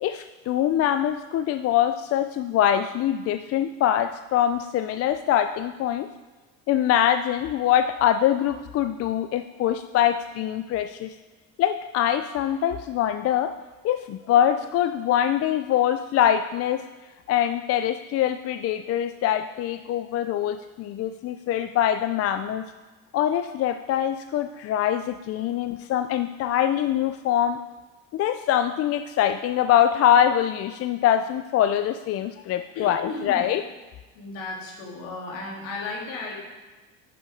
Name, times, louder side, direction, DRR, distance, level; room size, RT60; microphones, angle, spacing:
voice 1, 0.0-6.1 6.7-11.2 11.6-13.5 13.8-16.9 17.3-22.7 23.1-27.6 28.1-33.6, left 10 dB, 50° left, 10 dB, 0.4 m, -23 dB
voice 2, 32.7-33.4 34.1-36.3, left 3 dB, 80° left, -2 dB, 2.9 m, -35 dB
9.7 x 6.8 x 5.3 m, 1.2 s
cardioid pair, 115°, 32 cm